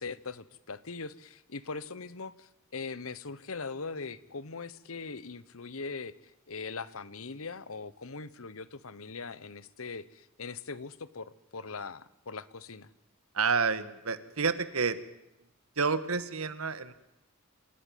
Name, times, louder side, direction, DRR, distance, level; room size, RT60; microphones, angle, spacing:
voice 1, 0.0-12.9, left 4 dB, 75° left, 17 dB, 1.1 m, -41 dB
voice 2, 13.3-15.0 15.8-16.9, right 5 dB, 80° right, 13 dB, 1.7 m, -29 dB
27.0 x 16.5 x 9.3 m, 0.87 s
head